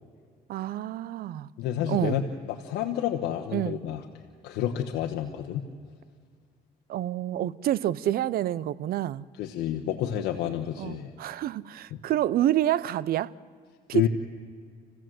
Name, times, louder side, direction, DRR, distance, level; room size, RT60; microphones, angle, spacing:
voice 1, 0.5-1.5 1.9-2.2 3.5-3.8 6.9-9.2 10.8-13.3 13.9-14.1, right 12 dB, 65° right, 0.6 m, -28 dB
voice 2, 1.6-4.0 4.4-5.6 9.4-11.1 11.9-12.0 13.9-14.1, left 10 dB, 90° left, 1.2 m, -29 dB
28.5 x 16.0 x 7.7 m
cardioid pair, 110°, 17 cm